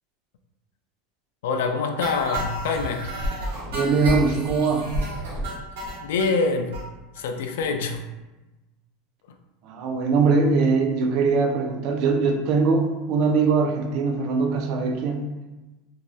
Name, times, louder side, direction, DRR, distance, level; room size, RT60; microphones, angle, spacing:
voice 1, 1.4-3.1 6.0-6.8 7.2-8.0, left 4 dB, 85° left, 0.3 m, -25 dB
sound 1, 2.0-6.3 6.7-6.8 7.2-7.3 7.5-7.6 7.9-8.0, equal, 90° right, 1.0 m, -30 dB
voice 2, 3.7-4.9 9.6-15.2, right 4 dB, 40° right, 0.4 m, -22 dB
3.0 x 2.6 x 2.2 m
supercardioid pair, 170°, 0 cm